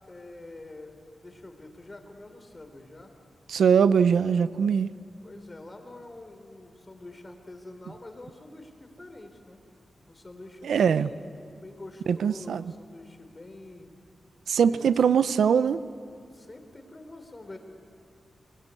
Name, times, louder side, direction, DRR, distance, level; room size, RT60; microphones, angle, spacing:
voice 1, 0.0-3.1 5.2-9.6 10.1-13.9 14.6-15.0 16.3-17.6, left 2 dB, 30° left, 6 dB, 3.8 m, -46 dB
voice 2, 3.5-4.9 10.6-11.1 12.1-12.7 14.5-15.8, right 7 dB, 85° right, 15 dB, 0.6 m, -22 dB
29.0 x 21.5 x 8.4 m, 2.4 s
cardioid pair, 75°, 0 cm